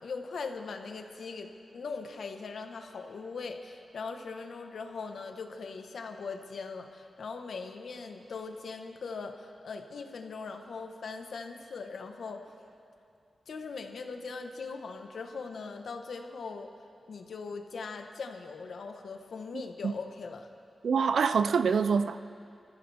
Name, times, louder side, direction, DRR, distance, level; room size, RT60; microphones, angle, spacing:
voice 1, 0.0-12.5 13.5-16.7 17.1-20.5, left 4 dB, 85° left, 5 dB, 1.1 m, -40 dB
voice 2, 20.8-22.2, right 6 dB, 85° right, 12 dB, 0.4 m, -25 dB
28.0 x 15.0 x 3.5 m, 2.5 s
wide cardioid pair, 170°, 0 cm